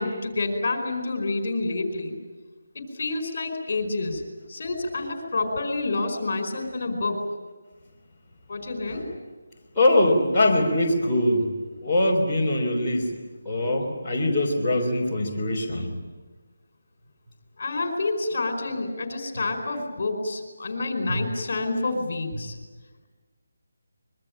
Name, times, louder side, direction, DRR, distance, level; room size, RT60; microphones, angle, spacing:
voice 1, 0.0-2.2 2.7-4.2 4.5-7.2 8.5-9.0 17.6-22.5, left 3 dB, 40° left, 5 dB, 4.8 m, -28 dB
voice 2, 9.8-11.5 11.8-13.2 13.5-15.9 21.1-21.2, left 1 dB, 5° left, -12 dB, 3.6 m, -22 dB
25.5 x 23.0 x 8.9 m, 1.3 s
figure-of-eight pair, 175°, 0 cm